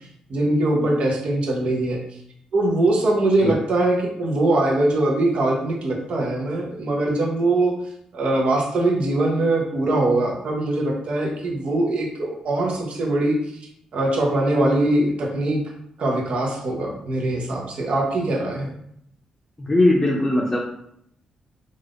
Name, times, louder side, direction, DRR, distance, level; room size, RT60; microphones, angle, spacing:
voice 1, 0.3-2.0 2.5-7.7 8.1-13.4 13.9-15.6 16.0-18.7, right 2 dB, 65° right, 0 dB, 0.8 m, -22 dB
voice 2, 19.6-20.6, left 1 dB, 20° left, -2 dB, 0.6 m, -19 dB
3.3 x 2.5 x 2.5 m, 0.72 s
cardioid pair, 70°, 2 cm